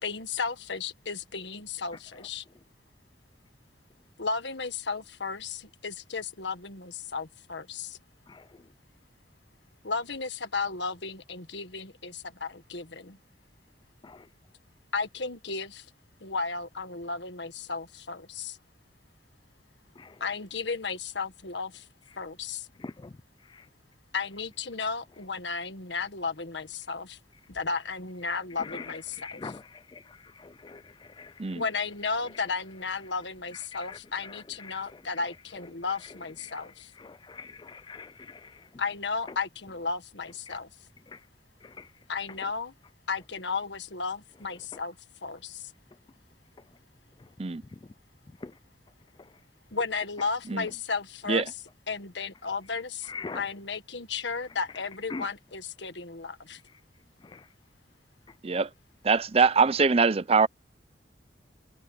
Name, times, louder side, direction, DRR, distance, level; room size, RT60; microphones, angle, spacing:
voice 1, 0.0-2.4 4.2-8.0 9.8-13.2 14.9-15.8 16.2-18.6 20.2-21.8 22.2-22.7 24.1-27.2 27.5-29.5 31.5-36.9 38.8-40.7 42.1-42.7 43.1-44.9 45.2-45.6 49.7-51.5 51.9-56.6, left 4 dB, 70° left, 1.6 m, -34 dB
voice 2, 29.2-29.6 30.4-30.8 31.2-31.3 33.9-34.0 34.6-34.8 36.4-36.6 37.3-38.5 41.8-41.9 48.4-48.5 53.1-53.4 55.1-55.3 57.3-57.4, left 4 dB, 25° left, 0.3 m, -40 dB
voice 3, 59.0-60.5, right 4 dB, 30° right, 0.5 m, -23 dB
head